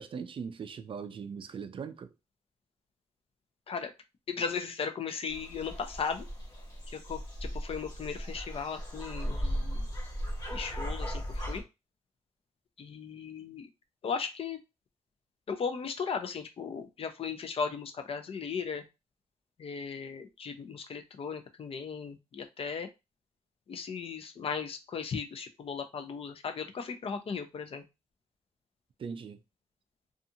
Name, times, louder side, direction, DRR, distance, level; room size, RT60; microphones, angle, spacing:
voice 1, 0.0-2.1 29.0-29.4, right 6 dB, 50° right, 0.4 m, -40 dB
voice 2, 4.3-6.2 6.9-9.9 10.5-11.6 12.8-13.7 14.0-14.6 15.5-18.8 19.6-22.9 23.7-27.8, left 5 dB, 55° left, 0.5 m, -37 dB
sound 1, 5.3-11.6, equal, 35° left, 1.1 m, -37 dB
2.5 x 2.4 x 2.6 m
wide cardioid pair, 110°, 12 cm